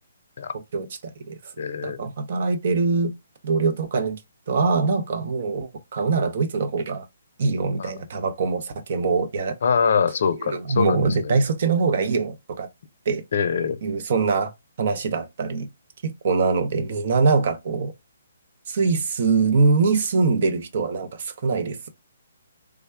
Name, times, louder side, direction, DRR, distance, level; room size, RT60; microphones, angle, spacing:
voice 1, 0.7-1.4 1.8-3.1 3.4-4.2 4.5-7.1 7.4-9.6 10.4-12.7 13.1-13.2 13.8-14.5 14.8-15.7 16.0-17.9 18.7-21.8, right 4 dB, 50° right, 0.7 m, -23 dB
voice 2, 1.6-2.1 7.8-7.9 9.6-11.4 13.3-13.8, left 6 dB, 60° left, 0.5 m, -24 dB
3.4 x 2.2 x 3.4 m
hypercardioid pair, 145°, 0 cm